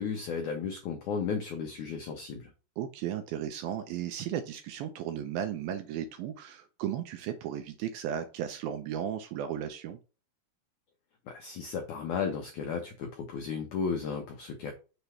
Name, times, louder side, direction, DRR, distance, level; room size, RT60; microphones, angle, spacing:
voice 1, 0.0-2.5 11.3-14.7, left 6 dB, 80° left, 3 dB, 1.7 m, -34 dB
voice 2, 2.8-10.0, right 10 dB, 80° right, 7 dB, 2.2 m, -35 dB
6.7 x 3.0 x 5.6 m, 0.33 s
omnidirectional pair, 4.7 m